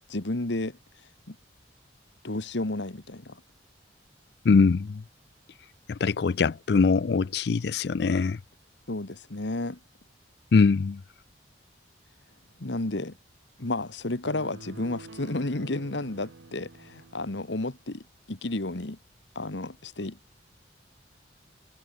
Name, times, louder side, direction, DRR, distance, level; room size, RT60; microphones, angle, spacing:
voice 1, 0.1-0.8 1.3-1.4 2.2-3.4 8.9-9.8 12.6-13.2 13.6-19.0 19.3-20.2, left 2 dB, 75° left, 1.6 m, -32 dB
voice 2, 4.4-5.0 5.9-8.4 10.5-11.0, left 4 dB, 60° left, 0.4 m, -22 dB
sound 1, 14.2-17.8, right 3 dB, 85° right, 0.9 m, -47 dB
head